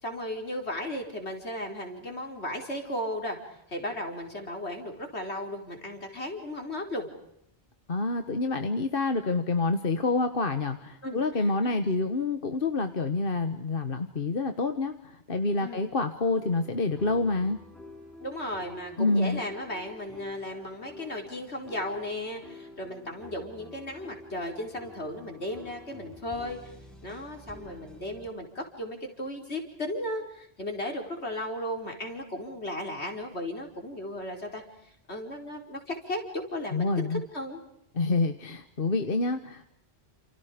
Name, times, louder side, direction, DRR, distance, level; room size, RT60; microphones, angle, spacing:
voice 1, 0.0-7.1 11.0-12.0 15.6-15.8 18.2-26.7 27.0-37.6, left 1 dB, 80° left, 3 dB, 5.0 m, -35 dB
voice 2, 7.9-17.6 19.0-19.4 36.7-37.2 37.9-39.7, left 3 dB, 55° left, 7 dB, 1.6 m, -27 dB
sound 1, 16.4-28.3, left 2 dB, ahead, 7.3 m, -49 dB
30.0 x 29.0 x 5.2 m, 0.78 s
omnidirectional pair, 1.1 m